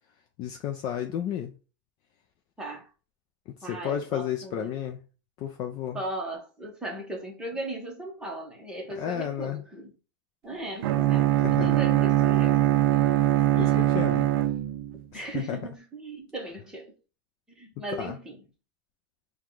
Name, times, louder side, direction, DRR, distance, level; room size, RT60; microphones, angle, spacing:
voice 1, 0.4-1.5 3.7-5.0 5.4-6.0 9.0-9.6 11.4-11.9 13.1-13.3 13.6-14.3 15.1-15.6 18.0-18.2, left 9 dB, 30° left, 0.4 m, -32 dB
voice 2, 2.6-2.9 3.6-4.7 5.9-9.9 10.4-12.6 13.5-13.8 15.1-16.9 17.6-18.4, right 2 dB, 5° right, 1.0 m, -37 dB
Bowed string instrument, 10.8-15.0, right 14 dB, 65° right, 0.4 m, -22 dB
4.6 x 2.3 x 3.7 m
supercardioid pair, 155°, 13 cm